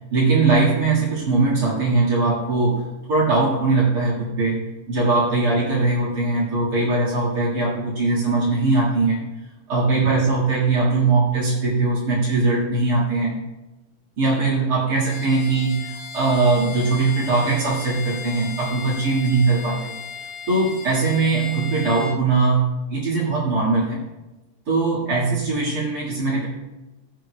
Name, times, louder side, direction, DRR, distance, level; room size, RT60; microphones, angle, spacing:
voice 1, 0.1-9.2 9.7-13.4 14.2-19.9 20.5-24.0 24.7-26.5, right 3 dB, 35° right, -8 dB, 1.6 m, -21 dB
Bowed string instrument, 15.0-22.2, left 6 dB, 80° left, 1.3 m, -36 dB
19.0 x 7.9 x 2.2 m, 1.1 s
omnidirectional pair, 4.1 m